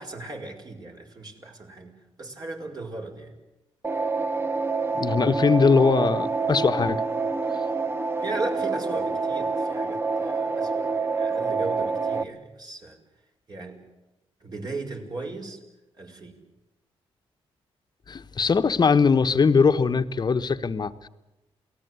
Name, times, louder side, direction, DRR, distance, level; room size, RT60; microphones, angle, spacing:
voice 1, 0.0-3.4 8.2-13.0 13.5-13.8 14.4-15.6 16.0-16.4, right 3 dB, 40° right, 3 dB, 5.7 m, -37 dB
sound 1, 3.8-12.2, right 4 dB, 20° right, 1.1 m, -27 dB
voice 2, 5.0-7.0 18.1-21.1, left 5 dB, 40° left, 9 dB, 1.3 m, -21 dB
28.5 x 19.0 x 8.3 m, 1.0 s
cardioid pair, 80°, 10 cm